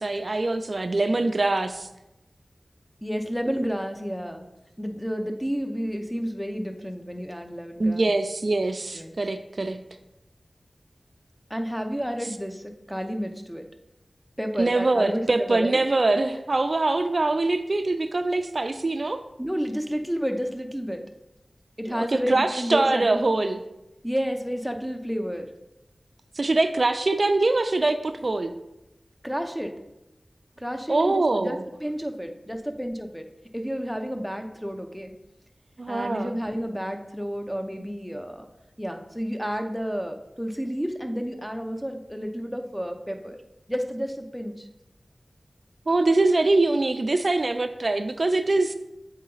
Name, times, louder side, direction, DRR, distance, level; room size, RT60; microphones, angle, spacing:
voice 1, 0.0-1.9 7.8-9.8 14.6-19.2 21.9-23.6 26.3-28.6 30.9-31.6 35.8-36.4 45.9-48.7, right 2 dB, 55° right, 9 dB, 0.3 m, -23 dB
voice 2, 3.0-4.5 4.8-8.1 8.9-9.2 11.5-13.7 14.4-15.8 19.4-21.0 21.8-23.3 24.0-25.5 29.2-29.8 30.6-33.2 33.5-35.1 35.9-38.5 38.8-43.4 43.7-44.7, equal, ahead, 5 dB, 0.6 m, -31 dB
7.6 x 4.1 x 3.9 m, 0.93 s
wide cardioid pair, 70°, 0 cm